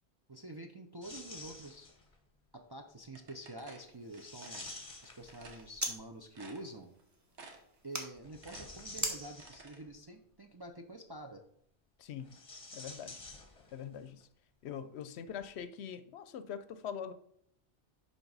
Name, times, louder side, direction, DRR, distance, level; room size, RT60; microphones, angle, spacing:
voice 1, 0.3-1.9 2.5-4.7 5.0-6.9 7.8-11.4, right 1 dB, 35° right, 3 dB, 0.4 m, -48 dB
sound 1, 1.0-2.1 4.1-5.9 8.2-9.9 12.2-14.0 14.2-14.3 15.3-15.4, left 3 dB, 30° left, 1.0 m, -50 dB
sound 2, 3.1-4.8 5.3-5.7 6.0-6.1 6.3-7.0 7.3-7.8 8.1-9.8, right 4 dB, 80° right, 1.4 m, -53 dB
sound 3, 3.8-6.0 6.3-8.1 8.9-9.2, right 1 dB, 15° right, 1.0 m, -42 dB
voice 2, 12.0-12.3 12.7-13.2 13.7-14.3 14.6-17.1, left 8 dB, 75° left, 12 dB, 0.8 m, -43 dB
10.5 x 3.9 x 4.0 m, 0.70 s
omnidirectional pair, 1.1 m